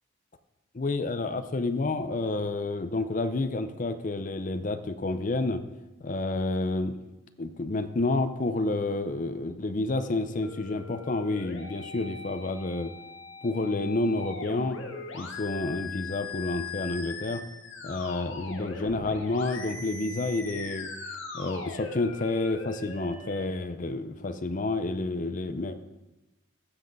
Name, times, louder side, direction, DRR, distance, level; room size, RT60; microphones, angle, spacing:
voice 1, 0.7-5.6 6.0-7.0 7.4-12.9 13.4-14.8 15.1-17.4 17.8-20.9 21.3-25.8, left 2 dB, 35° left, 10 dB, 0.5 m, -29 dB
sound 1, 10.4-23.4, left 4 dB, 60° left, 1.5 m, -40 dB
15.0 x 7.6 x 3.9 m, 1.0 s
head